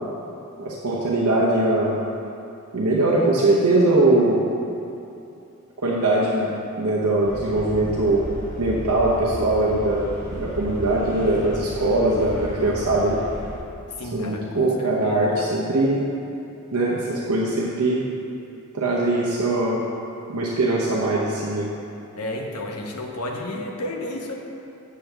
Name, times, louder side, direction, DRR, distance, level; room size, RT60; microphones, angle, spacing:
voice 1, 0.6-2.0 2.7-4.4 5.8-6.5 6.8-8.2 8.6-13.2 14.1-16.0 16.7-18.0 18.7-19.8 20.3-21.7, right 2 dB, 75° right, -5 dB, 0.8 m, -21 dB
sound 1, 7.2-13.6, equal, 30° left, 2.0 m, -35 dB
voice 2, 14.0-15.5 22.2-24.3, left 1 dB, 80° left, 1 dB, 0.9 m, -32 dB
8.4 x 7.5 x 3.4 m, 2.7 s
head